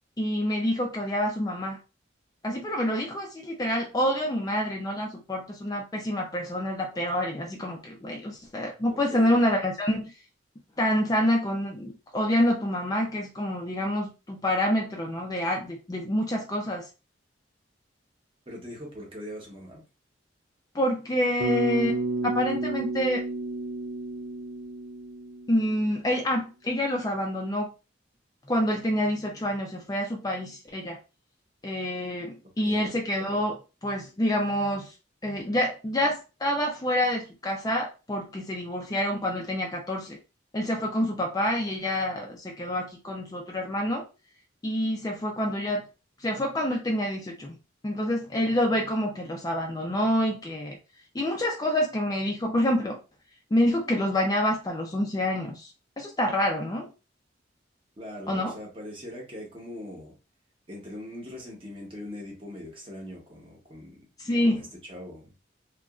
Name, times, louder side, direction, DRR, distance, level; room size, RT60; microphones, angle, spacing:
voice 1, 0.2-1.8 2.4-10.1 10.8-16.9 20.7-23.2 25.5-27.7 28.5-31.0 31.6-34.9 35.2-40.2 40.5-44.1 44.6-45.9 46.2-47.5 47.8-50.8 51.1-53.0 53.5-55.7 56.0-56.9 58.3-58.6 64.2-64.7, left 1 dB, 20° left, 0 dB, 0.4 m, -27 dB
voice 2, 8.9-9.3 18.5-19.8 32.6-32.9 58.0-60.1 60.7-64.1 64.4-65.3, left 1 dB, 30° right, -1 dB, 0.9 m, -41 dB
Bass guitar, 21.4-25.8, right 2 dB, 70° right, 0.4 m, -31 dB
2.8 x 2.4 x 2.3 m, 0.30 s
head